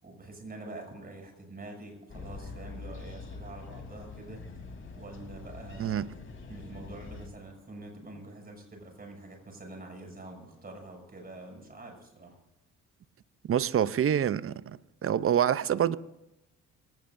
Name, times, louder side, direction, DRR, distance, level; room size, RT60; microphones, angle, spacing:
voice 1, 0.0-4.4 5.0-6.2 6.5-12.4, right 2 dB, 30° right, 7.2 m, -46 dB
sound 1, 2.1-7.3, left 4 dB, 40° left, 3.5 m, -44 dB
voice 2, 13.5-14.6 15.0-16.0, right 9 dB, 45° right, 0.7 m, -26 dB
24.5 x 18.0 x 2.7 m
cardioid pair, 90°, 30 cm